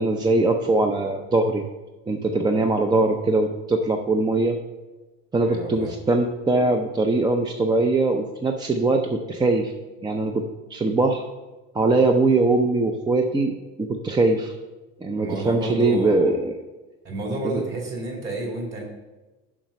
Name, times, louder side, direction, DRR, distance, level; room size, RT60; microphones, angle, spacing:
voice 1, 0.0-1.6 2.1-4.6 5.3-9.7 10.0-11.3 11.7-14.5 15.0-16.5 17.5-17.6, right 2 dB, 15° right, 4 dB, 0.5 m, -21 dB
voice 2, 5.4-5.9 15.2-16.3 17.0-18.8, right 1 dB, 40° right, -1 dB, 3.1 m, -30 dB
7.3 x 5.8 x 6.6 m, 1.1 s
cardioid pair, 130°, 29 cm